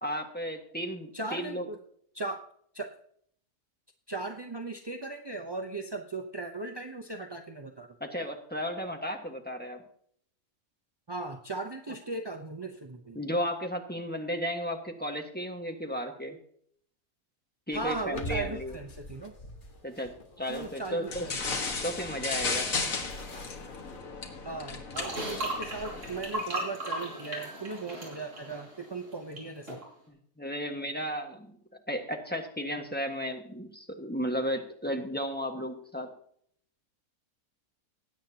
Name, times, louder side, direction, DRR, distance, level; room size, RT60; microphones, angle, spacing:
voice 1, 0.0-1.7 8.0-9.8 13.1-16.4 17.7-18.8 19.8-21.3 21.8-22.7 30.1-31.6 31.9-36.1, equal, 5° left, 3 dB, 1.4 m, -34 dB
voice 2, 1.1-1.8 2.1-2.5 2.7-2.9 4.1-7.9 11.1-13.2 17.7-19.3 20.5-21.5 24.4-29.8, right 3 dB, 30° right, 4 dB, 0.4 m, -38 dB
sound 1, 17.7-24.0, equal, 35° left, 1.6 m, -45 dB
sound 2, 21.1-26.4, left 4 dB, 65° left, 2.0 m, -35 dB
sound 3, 24.9-29.4 29.7-29.8, right 1 dB, 55° right, 5.0 m, -36 dB
20.0 x 9.2 x 2.9 m, 0.64 s
omnidirectional pair, 1.6 m